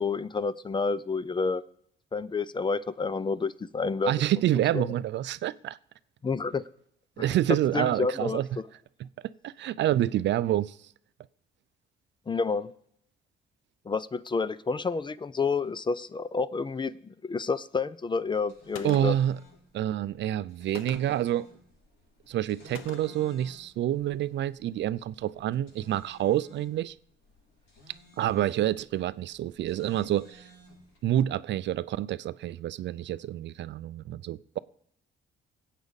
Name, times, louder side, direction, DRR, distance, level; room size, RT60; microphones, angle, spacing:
voice 1, 0.0-1.6 2.1-4.1 4.7-4.9 6.2-6.6 7.2-7.3 7.7-8.6 12.3-12.7 13.9-19.1, left 4 dB, 25° left, 0.5 m, -29 dB
voice 2, 4.0-5.8 7.2-8.5 9.0-10.8 18.8-19.4 19.7-21.5 22.3-26.9 28.2-30.5 31.0-34.6, right 12 dB, 65° right, 0.4 m, -28 dB
sound 1, 18.3-31.3, left 1 dB, 65° left, 6.4 m, -57 dB
Gunshot gunfire, 18.7-19.3 20.8-21.3 22.8-23.3, left 8 dB, 85° left, 0.8 m, -45 dB
19.5 x 8.4 x 4.0 m
cardioid pair, 90°, 20 cm